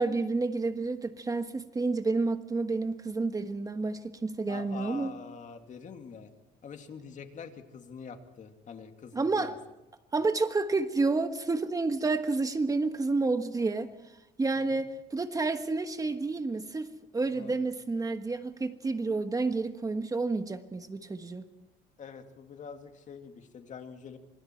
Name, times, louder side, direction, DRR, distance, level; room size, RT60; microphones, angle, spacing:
voice 1, 0.0-5.1 9.1-9.5 10.1-13.9 14.4-21.4, right 3 dB, 20° right, 8 dB, 1.3 m, -30 dB
voice 2, 4.5-6.3 6.6-9.6 14.6-14.8 17.3-17.6 22.0-24.2, left 6 dB, 45° left, 6 dB, 2.4 m, -45 dB
27.0 x 26.0 x 4.5 m, 0.90 s
cardioid pair, 110°, 17 cm